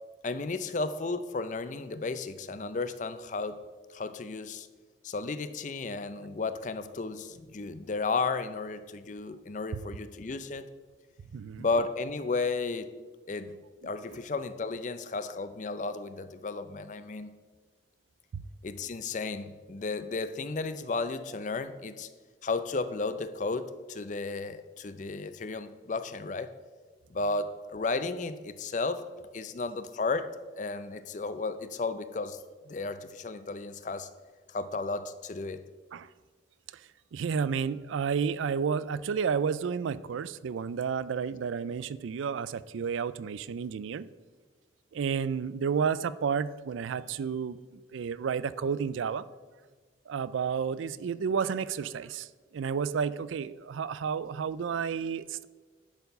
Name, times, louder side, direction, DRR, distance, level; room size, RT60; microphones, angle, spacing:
voice 1, 0.2-3.6 3.9-4.7 5.0-10.7 11.6-12.9 13.3-13.5 13.8-17.3 18.6-22.1 22.4-26.5 27.1-29.0 29.3-32.4 32.7-34.1 34.5-35.6, left 3 dB, 40° left, 12 dB, 0.4 m, -33 dB
voice 2, 11.3-11.7 18.3-18.4 35.9-36.1 37.1-44.1 44.9-49.2 50.1-52.3 52.5-55.4, right 6 dB, 90° right, 17 dB, 0.4 m, -31 dB
10.5 x 4.6 x 5.4 m, 1.4 s
head